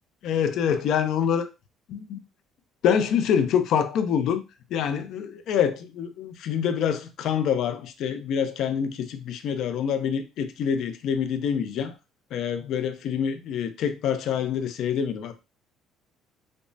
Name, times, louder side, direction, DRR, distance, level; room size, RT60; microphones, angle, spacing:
voice 1, 0.2-1.5 1.9-2.2 2.8-4.4 4.7-11.9 12.3-15.3, left 8 dB, 65° left, 0.5 m, -26 dB
5.0 x 2.1 x 2.7 m
cardioid pair, 110°, 0 cm